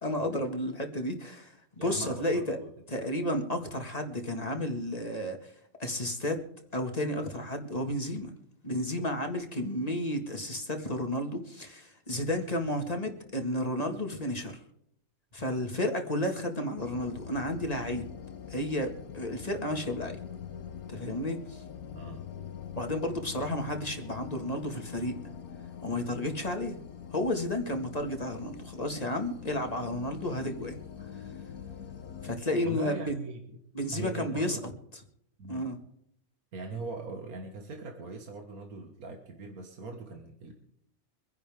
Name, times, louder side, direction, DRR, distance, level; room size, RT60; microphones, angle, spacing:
voice 1, 0.0-2.6 2.9-5.5 5.8-6.5 6.7-8.3 8.6-14.6 15.3-18.1 18.5-20.2 20.9-21.6 22.8-25.2 25.8-26.8 27.1-31.1 32.2-33.1 33.7-34.7 35.5-35.8, left 1 dB, 25° left, 4 dB, 2.0 m, -32 dB
voice 2, 1.8-2.7 21.9-22.3 32.6-33.6 33.9-34.6 35.4-35.7 36.5-40.5, right 3 dB, 80° right, 2 dB, 2.1 m, -40 dB
sound 1, 16.8-32.4, left 8 dB, 80° left, 1.4 m, -44 dB
25.0 x 10.5 x 3.6 m, 0.72 s
omnidirectional pair, 1.5 m